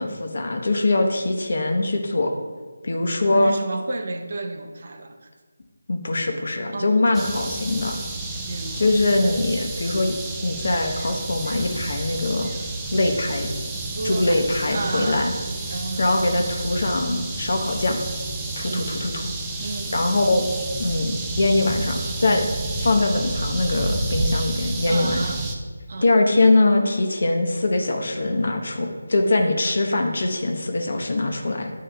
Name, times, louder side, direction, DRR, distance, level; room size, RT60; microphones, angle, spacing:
voice 1, 0.0-2.3 2.8-3.6 5.9-8.0 8.7-10.1 10.4-12.5 12.9-13.5 14.0-15.3 16.0-18.0 18.6-19.2 19.9-20.5 20.8-22.5 22.8-25.2 26.0-31.7, left 2 dB, 60° left, 4 dB, 0.9 m, -22 dB
voice 2, 3.1-5.3 6.7-7.0 8.5-9.0 13.9-15.3 15.7-16.1 18.7-18.9 19.6-20.2 24.9-25.5 25.9-26.1, right 2 dB, 50° right, 5 dB, 0.7 m, -32 dB
sound 1, 7.1-25.6, right 2 dB, 10° right, 0.5 m, -30 dB
9.4 x 3.8 x 3.4 m, 1.5 s
figure-of-eight pair, 160°, 0 cm